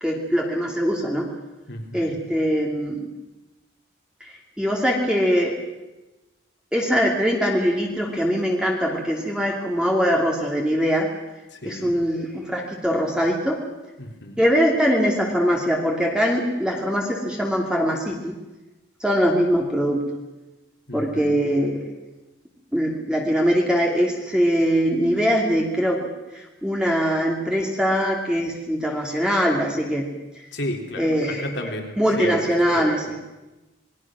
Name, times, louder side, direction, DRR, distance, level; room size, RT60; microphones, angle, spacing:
voice 1, 0.0-1.3 1.9-3.1 4.6-5.5 6.7-11.1 11.6-13.6 14.4-18.3 19.0-20.0 20.9-21.8 22.7-26.1 26.3-30.1 31.0-31.7 32.0-33.0, equal, 5° right, -1 dB, 2.6 m, -22 dB
voice 2, 1.7-2.3 11.5-12.0 14.0-14.4 20.9-21.4 30.5-33.2, left 1 dB, 60° left, 3 dB, 3.5 m, -34 dB
27.0 x 21.0 x 6.2 m, 1.1 s
head